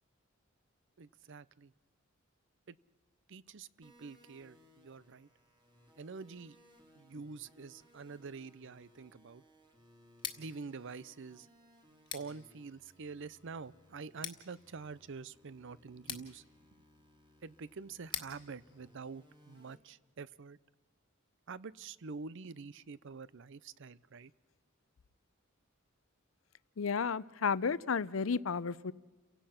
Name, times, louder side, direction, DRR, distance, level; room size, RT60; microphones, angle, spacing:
voice 1, 1.0-1.7 2.7-2.8 3.3-5.3 6.0-6.6 6.9-9.4 10.4-11.5 12.1-16.4 17.4-20.6 21.5-24.3, right 4 dB, 60° right, 0.6 m, -47 dB
sound 1, 3.8-19.7, equal, 20° right, 3.0 m, -65 dB
Scissors, 10.1-19.9, left 7 dB, 25° left, 1.7 m, -49 dB
voice 2, 26.8-28.9, left 5 dB, 70° left, 0.6 m, -32 dB
30.0 x 17.0 x 5.8 m
head